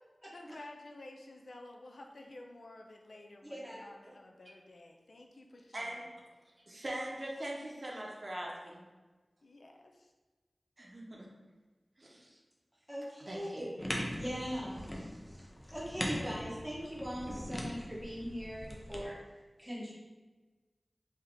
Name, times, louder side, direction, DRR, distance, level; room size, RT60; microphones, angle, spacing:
voice 1, 0.3-6.1 9.4-10.1, left 2 dB, 85° left, 2 dB, 0.4 m, -52 dB
voice 2, 3.5-3.8 12.9-13.8 14.2-19.2 19.6-19.9, equal, ahead, -7 dB, 1.2 m, -41 dB
voice 3, 5.7-6.1 6.7-8.8 10.8-11.3 12.0-12.4 13.2-13.7 13.9-14.0, right 1 dB, 50° right, -2 dB, 0.7 m, -42 dB
sound 1, 13.8-19.0, equal, 25° left, 0.6 m, -41 dB
3.4 x 2.8 x 3.6 m, 1.3 s
wide cardioid pair, 70°, 0 cm